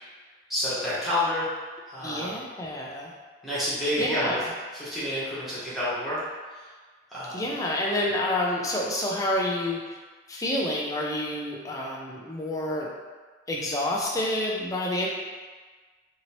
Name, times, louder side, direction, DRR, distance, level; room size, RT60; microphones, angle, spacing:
voice 1, 0.5-1.5 1.9-2.4 3.4-4.4 4.7-6.2 6.6-6.7 7.1-7.4, left 1 dB, ahead, -12 dB, 1.0 m, -29 dB
voice 2, 2.0-3.1 4.0-4.5 7.3-10.0 10.3-12.9 13.5-15.1, left 1 dB, 15° left, -2 dB, 0.3 m, -28 dB
2.8 x 2.7 x 2.9 m, 1.4 s
head